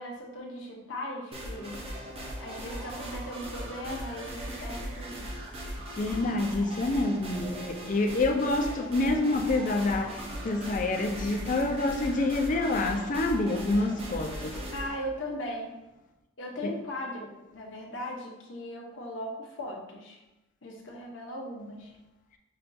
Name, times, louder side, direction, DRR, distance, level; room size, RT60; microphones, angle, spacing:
voice 1, 0.0-1.8 2.4-5.3 14.7-15.7 16.4-20.2 20.6-21.9, equal, 65° left, 0.8 m, -38 dB
sound 1, 1.3-14.9, right 1 dB, 30° right, 0.6 m, -39 dB
voice 2, 6.0-14.6 16.6-16.7, left 2 dB, 40° left, 0.4 m, -27 dB
5.7 x 2.3 x 2.6 m
head